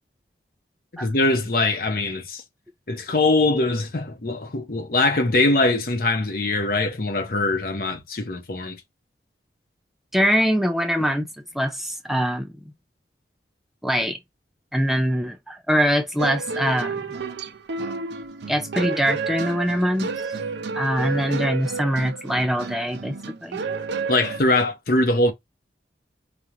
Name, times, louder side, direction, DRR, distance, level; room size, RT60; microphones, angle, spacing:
voice 1, 0.9-2.4 2.9-8.8 24.1-25.3, left 2 dB, 55° left, 0.9 m, -22 dB
voice 2, 10.1-11.3 11.5-12.5 13.8-14.2 14.7-17.0 18.5-20.1 20.7-23.2 23.4-23.6, equal, ahead, 0.4 m, -23 dB
sound 1, 16.2-24.4, right 4 dB, 75° right, 0.6 m, -31 dB
5.0 x 2.4 x 2.9 m
head